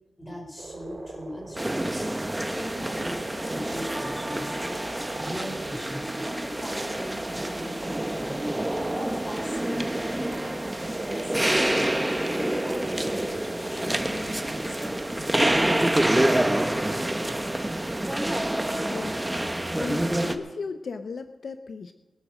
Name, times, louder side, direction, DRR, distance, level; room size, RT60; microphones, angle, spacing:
voice 1, 0.2-2.2 2.5-4.8 5.1-8.5 8.9-10.4 10.8-12.0 12.2-17.0, equal, 10° left, 0 dB, 5.2 m, -39 dB
sound 1, 0.6-19.0, right 3 dB, 45° right, 1.9 m, -42 dB
sound 2, 1.6-20.4, right 1 dB, 10° right, 1.0 m, -27 dB
voice 2, 18.9-21.9, left 4 dB, 65° left, 9 dB, 0.7 m, -37 dB
22.0 x 7.9 x 6.4 m, 1.2 s
wide cardioid pair, 115°, 0 cm